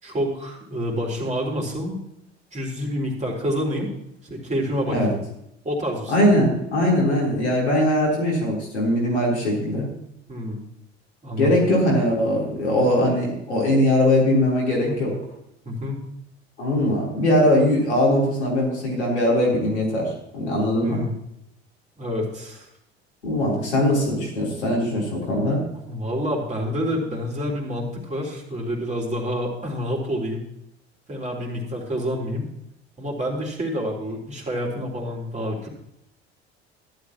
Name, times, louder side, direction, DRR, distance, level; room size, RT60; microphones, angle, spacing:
voice 1, 0.0-2.0 2.5-3.9 4.2-5.2 5.6-6.2 10.3-10.6 11.2-11.5 14.8-15.0 15.6-16.1 20.8-21.2 22.0-22.7 25.9-30.4 31.1-32.5 33.0-35.7, equal, 20° right, -1 dB, 3.6 m, -28 dB
voice 2, 6.1-9.9 11.4-15.1 16.6-21.0 23.2-25.6, left 1 dB, 80° left, -4 dB, 4.0 m, -21 dB
14.5 x 12.0 x 3.0 m, 0.80 s
figure-of-eight pair, 60°, 33 cm